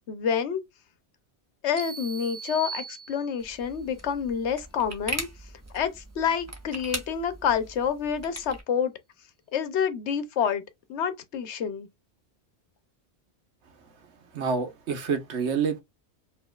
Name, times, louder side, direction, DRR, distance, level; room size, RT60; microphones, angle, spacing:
voice 1, 0.1-0.6 1.6-5.3 5.7-8.9 9.5-10.6 10.9-11.9, left 7 dB, 85° left, 1.0 m, -28 dB
sound 1, 1.8-3.6, right 6 dB, 60° right, 1.1 m, -39 dB
sound 2, 3.4-8.6, right 1 dB, 15° right, 0.9 m, -39 dB
voice 2, 14.3-15.8, right 6 dB, 80° right, 1.3 m, -27 dB
5.0 x 3.1 x 2.3 m
omnidirectional pair, 1.1 m